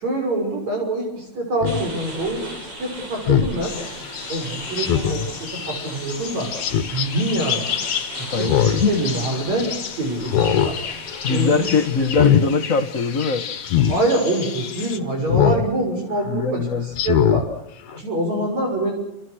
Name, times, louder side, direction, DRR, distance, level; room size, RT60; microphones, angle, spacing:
voice 1, 0.0-2.4 2.8-3.8 4.3-6.5 6.9-7.7 8.2-10.8 11.2-11.7 12.0-12.4 13.9-17.5 17.9-18.9, right 1 dB, 70° right, 2 dB, 7.5 m, -25 dB
Speech synthesizer, 1.6-1.8 3.3-3.5 4.8-5.3 6.6-7.1 8.4-8.9 9.3-9.4 10.2-10.7 11.1-11.4 12.0-12.5 13.7-14.0 15.3-15.7 16.1-16.2 16.9-17.4 17.9-18.0, left 10 dB, 85° left, 2.7 m, -19 dB
sound 1, 1.6-12.5, right 2 dB, 50° right, 7.3 m, -38 dB
sound 2, 3.6-15.0, left 7 dB, 50° left, 2.4 m, -32 dB
voice 2, 8.3-9.0 11.2-13.5 16.3-16.9, left 4 dB, 35° left, 8 dB, 1.6 m, -21 dB
28.5 x 28.0 x 6.4 m, 0.81 s
omnidirectional pair, 3.3 m